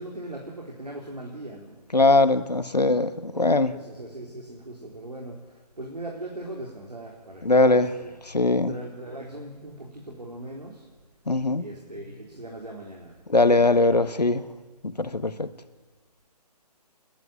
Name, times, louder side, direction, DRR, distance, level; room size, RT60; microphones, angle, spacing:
voice 1, 0.0-1.9 3.3-5.4 5.8-8.1 8.7-10.9 11.6-13.7, right 1 dB, 75° right, -1 dB, 4.0 m, -39 dB
voice 2, 1.9-3.7 7.4-7.9 8.3-8.7 11.3-11.6 13.3-14.4 15.0-15.5, left 2 dB, 80° left, 12 dB, 1.4 m, -21 dB
29.5 x 11.5 x 9.5 m, 1.4 s
figure-of-eight pair, 140°, 21 cm